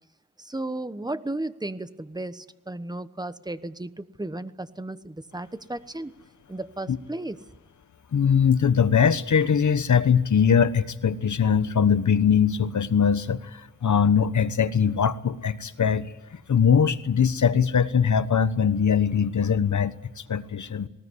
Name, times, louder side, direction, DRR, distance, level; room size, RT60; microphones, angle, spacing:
voice 1, 0.4-6.1 6.5-7.4, right 2 dB, 10° right, 13 dB, 1.1 m, -34 dB
voice 2, 8.1-20.9, left 7 dB, 60° left, 13 dB, 1.2 m, -22 dB
20.0 x 19.0 x 9.9 m, 1.1 s
wide cardioid pair, 85°, 33 cm